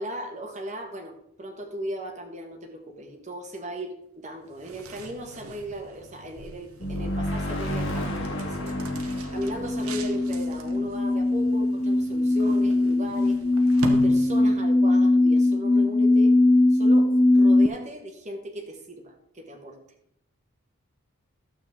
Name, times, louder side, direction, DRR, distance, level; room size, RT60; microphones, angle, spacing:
voice 1, 0.0-8.9 9.3-16.3 16.7-19.8, equal, 35° right, 3 dB, 1.2 m, -37 dB
sound 1, 4.4-14.8, right 1 dB, 85° right, 1.2 m, -41 dB
sound 2, 6.8-11.4, equal, 60° left, 2.0 m, -32 dB
sound 3, 8.2-17.7, left 2 dB, 15° left, 0.5 m, -21 dB
12.0 x 7.5 x 3.6 m, 0.73 s
head